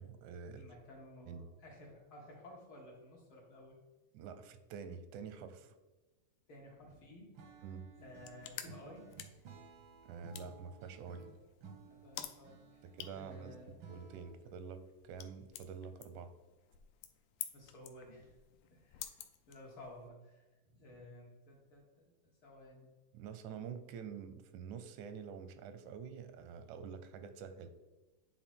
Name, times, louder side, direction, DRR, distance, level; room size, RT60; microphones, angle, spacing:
voice 1, 0.0-0.6 1.3-1.5 4.1-5.8 7.6-7.9 10.0-11.2 12.8-13.6 13.9-16.3 23.1-27.7, right 6 dB, 90° right, 10 dB, 2.1 m, -47 dB
voice 2, 0.5-3.8 6.5-7.3 8.0-9.1 11.9-12.9 13.1-13.8 17.5-18.4 18.7-19.2 19.5-22.1 22.4-22.9, left 1 dB, 55° left, -2 dB, 1.8 m, -54 dB
Acoustic guitar / Strum, 7.3-14.5, right 5 dB, 70° right, 1.2 m, -56 dB
sound 1, 8.0-20.1, left 11 dB, 85° left, 2.0 m, -52 dB
8.8 x 3.9 x 4.4 m, 1.2 s
omnidirectional pair, 3.3 m